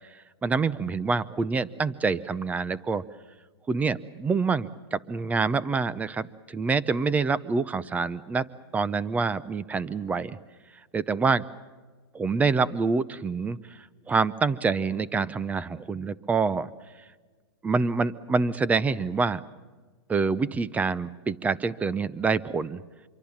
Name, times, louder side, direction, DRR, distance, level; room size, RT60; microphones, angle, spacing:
voice 1, 0.4-3.0 3.7-8.4 8.7-10.4 10.9-11.4 12.1-13.6 14.1-16.7 17.6-19.4 20.1-22.8, right 4 dB, 10° right, 18 dB, 0.6 m, -26 dB
25.5 x 23.5 x 7.2 m, 1.4 s
hypercardioid pair, 140°, 14 cm